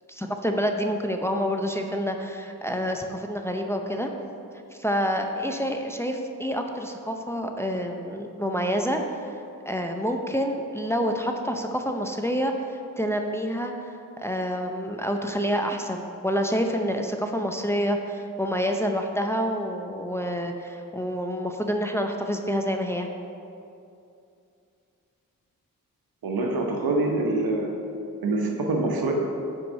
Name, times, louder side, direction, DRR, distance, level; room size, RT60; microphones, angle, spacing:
voice 1, 0.1-4.1 4.7-9.2 9.7-23.1, equal, 5° left, 3 dB, 0.6 m, -28 dB
voice 2, 26.2-27.7 28.2-29.1, right 2 dB, 80° right, 0 dB, 1.1 m, -25 dB
5.7 x 4.7 x 5.5 m, 2.6 s
cardioid pair, 50°, 36 cm